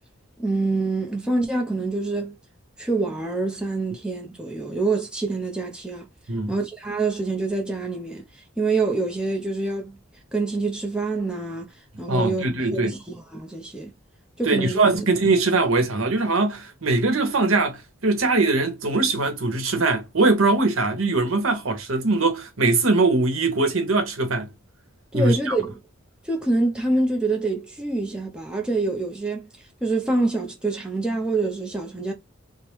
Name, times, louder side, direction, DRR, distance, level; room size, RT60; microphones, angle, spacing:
voice 1, 0.4-2.4 2.8-6.1 6.5-8.2 8.6-10.0 10.3-11.7 12.0-12.4 12.7-13.9 14.4-15.0 25.1-25.8 26.2-29.5 29.8-32.1, right 3 dB, 5° right, 0.6 m, -26 dB
voice 2, 12.1-12.9 14.5-17.8 18.0-24.5 25.1-25.6, right 3 dB, 80° right, 0.9 m, -21 dB
3.2 x 2.1 x 3.0 m
head